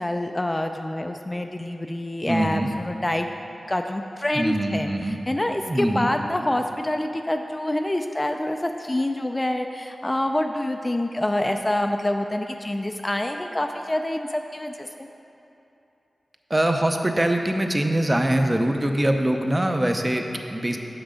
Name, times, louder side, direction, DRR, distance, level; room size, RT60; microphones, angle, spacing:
voice 1, 0.0-3.3 3.7-15.1, left 1 dB, 20° left, 5 dB, 0.3 m, -26 dB
voice 2, 2.3-2.7 4.3-5.2 5.7-6.1 16.5-20.8, right 1 dB, 25° right, 4 dB, 0.6 m, -23 dB
6.4 x 6.0 x 5.0 m, 2.9 s
cardioid pair, 60°, 0 cm